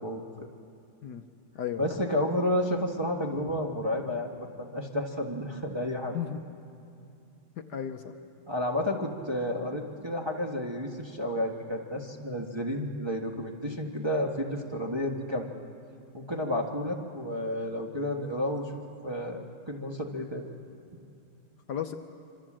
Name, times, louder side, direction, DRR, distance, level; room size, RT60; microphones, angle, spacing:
voice 1, 0.0-0.5 1.8-4.3 4.6-6.2 8.5-15.5 16.1-20.4, left 1 dB, 15° right, 0 dB, 1.5 m, -31 dB
voice 2, 7.6-8.1 21.7-21.9, left 9 dB, 65° left, 6 dB, 1.4 m, -34 dB
26.0 x 25.0 x 7.6 m, 2.5 s
omnidirectional pair, 2.1 m